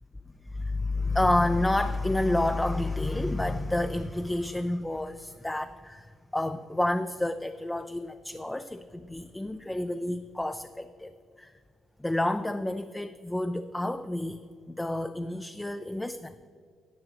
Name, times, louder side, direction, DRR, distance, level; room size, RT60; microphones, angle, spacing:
voice 1, 0.5-11.1 11.4-11.5 12.0-16.3, left 1 dB, 10° left, 10 dB, 0.4 m, -29 dB
9.8 x 9.6 x 4.1 m, 2.2 s
cardioid pair, 90°, 0 cm